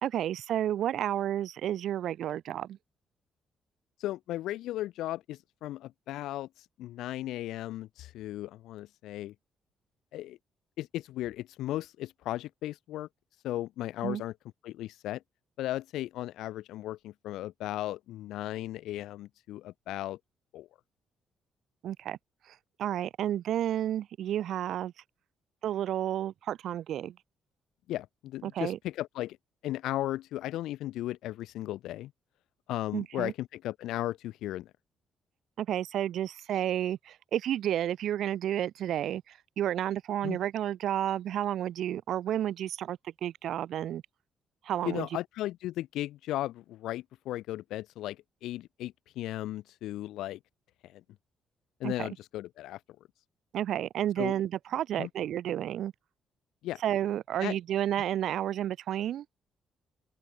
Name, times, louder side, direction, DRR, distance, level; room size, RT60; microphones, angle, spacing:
voice 1, 0.0-2.8 14.0-14.2 21.8-22.2 22.8-24.9 25.6-27.1 28.4-28.8 32.9-33.3 35.6-44.0 44.6-45.1 51.8-52.1 53.5-55.9 56.8-59.2, right 11 dB, 75° right, 1.5 m, -31 dB
voice 2, 4.0-9.3 10.1-10.4 10.8-13.1 13.4-14.3 14.6-15.2 15.6-20.2 20.5-20.7 27.9-29.4 29.6-32.1 32.7-34.7 40.2-40.4 44.8-50.4 50.8-51.0 51.8-52.8 54.2-54.3 55.0-55.1 56.6-56.8 57.4-57.6, left 14 dB, 85° left, 1.1 m, -36 dB
open air
cardioid pair, 90°, 0 cm